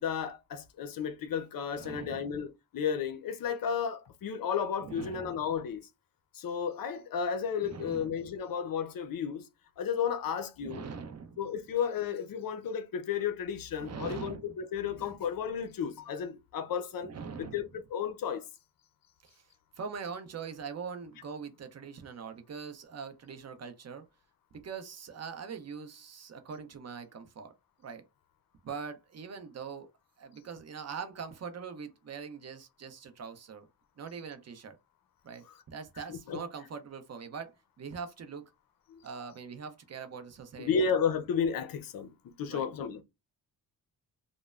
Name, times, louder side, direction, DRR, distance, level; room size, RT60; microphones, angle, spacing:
voice 1, 0.0-5.8 6.3-9.5 9.8-10.8 11.4-17.1 17.4-18.5 36.1-36.4 38.9-39.0 40.6-43.0, left 7 dB, 65° left, 0.5 m, -33 dB
voice 2, 1.8-2.3 4.8-5.4 7.6-8.3 10.6-11.4 13.8-14.5 14.9-15.1 17.0-17.6 19.2-19.5 19.8-24.0 24.5-27.5 27.8-28.0 28.6-29.9 30.2-33.6 34.0-34.8 35.2-38.5 39.0-40.9 42.5-42.6, right 6 dB, 45° right, 0.6 m, -42 dB
3.1 x 2.0 x 2.3 m
cardioid pair, 90°, 37 cm